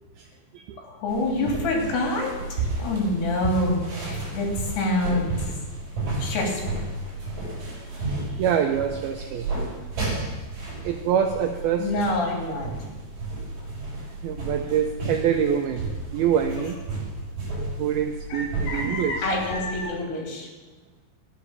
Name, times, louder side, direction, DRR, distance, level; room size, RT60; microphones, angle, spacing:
voice 1, 0.8-5.5 6.2-6.8 11.8-12.7 18.3-20.5, left 2 dB, 65° left, -1 dB, 4.9 m, -27 dB
sound 1, 1.1-19.8, right 3 dB, 50° right, 6.7 m, -32 dB
voice 2, 7.7-9.5 10.8-11.9 14.2-16.8 17.8-19.2, right 8 dB, 90° right, 5 dB, 2.2 m, -26 dB
13.5 x 10.0 x 6.9 m, 1.3 s
omnidirectional pair, 5.2 m